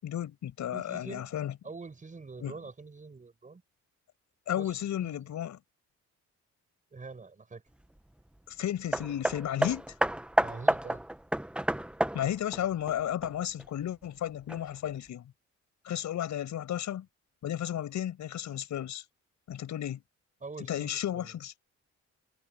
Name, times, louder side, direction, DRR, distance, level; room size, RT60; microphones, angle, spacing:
voice 1, 0.0-1.5 2.4-2.5 4.5-5.6 8.5-9.9 12.1-15.3 15.8-17.1 17.4-19.0 19.5-20.0 20.7-21.5, left 11 dB, 75° left, 6.7 m, -33 dB
voice 2, 0.7-1.3 1.6-3.6 4.5-4.7 5.0-5.2 6.9-7.6 10.4-11.0 20.4-21.3, right 4 dB, 25° right, 6.8 m, -45 dB
Hammer, 8.9-13.7 14.5-14.6, right 1 dB, 5° right, 0.8 m, -30 dB
cardioid pair, 120°, 29 cm